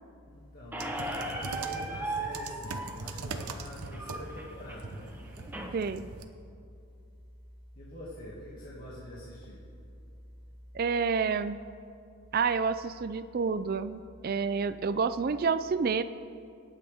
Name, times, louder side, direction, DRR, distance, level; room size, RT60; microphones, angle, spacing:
voice 1, 0.3-5.2 7.7-9.7, left 1 dB, 45° left, -7 dB, 2.2 m, -44 dB
Squeak, 0.7-5.7, right 2 dB, 10° right, 1.0 m, -38 dB
sound 1, 0.8-6.2, right 3 dB, 85° right, 0.8 m, -41 dB
voice 2, 5.7-6.0 10.7-11.6 12.3-16.0, right 5 dB, 40° right, 12 dB, 0.3 m, -29 dB
25.5 x 9.0 x 3.6 m, 2.5 s
head